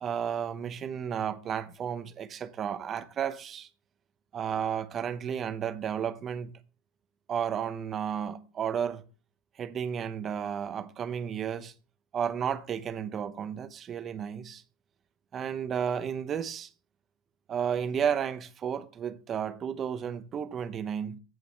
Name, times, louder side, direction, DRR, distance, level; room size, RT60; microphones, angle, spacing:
voice 1, 0.0-3.7 4.3-6.5 7.3-9.0 9.6-11.7 12.1-14.6 15.3-16.7 17.5-21.2, right 8 dB, 30° right, 0.8 m, -32 dB
15.0 x 5.2 x 3.1 m
hypercardioid pair, 110°, 0 cm